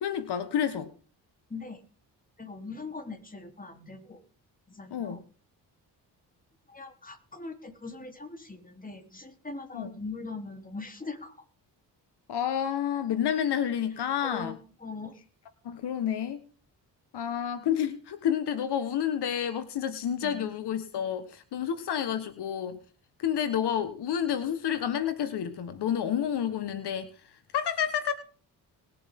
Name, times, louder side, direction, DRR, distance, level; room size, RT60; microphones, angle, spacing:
voice 1, 0.0-0.9 4.9-5.2 9.7-9.9 12.3-14.6 15.6-16.4 17.1-22.8 23.2-27.1 27.5-28.1, left 9 dB, 75° left, 11 dB, 1.5 m, -29 dB
voice 2, 2.4-4.2 4.7-5.2 6.7-11.3 14.0-15.1 20.2-20.5, left 3 dB, 20° left, 6 dB, 3.5 m, -41 dB
20.5 x 8.4 x 3.7 m, 0.38 s
cardioid pair, 70°, 40 cm